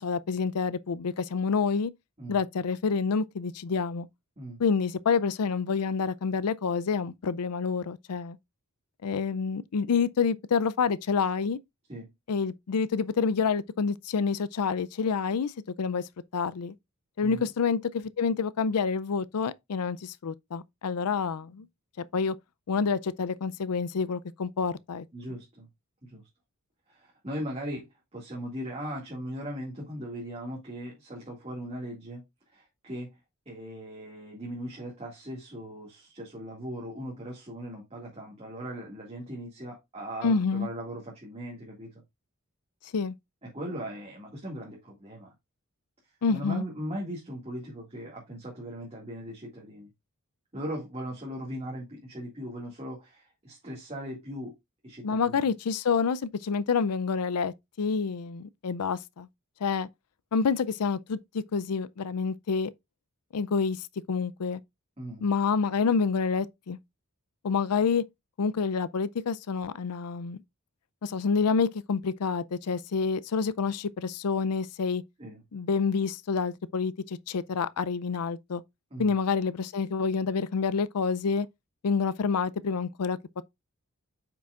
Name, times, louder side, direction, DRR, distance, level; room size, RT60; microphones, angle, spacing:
voice 1, 0.0-1.9 2.3-4.1 4.6-8.4 9.0-11.6 12.3-15.5 15.8-16.0 16.3-16.7 17.2-21.7 22.0-22.4 22.7-25.1 40.2-40.7 42.9-43.1 46.2-46.6 55.0-59.3 59.6-59.9 60.3-62.7 63.3-64.6 65.2-66.8 67.4-68.0 68.4-70.4 71.0-75.0 75.5-78.6 79.0-81.5 81.8-83.4, left 5 dB, 90° left, 0.5 m, -28 dB
voice 2, 25.1-25.7 26.0-26.2 26.9-27.8 28.1-32.2 32.5-33.1 33.5-42.0 43.4-45.3 46.3-49.9 50.5-54.5 54.8-55.5 65.0-65.3 75.2-75.4 78.9-79.1, equal, 25° right, 2.1 m, -39 dB
8.5 x 6.0 x 2.5 m
head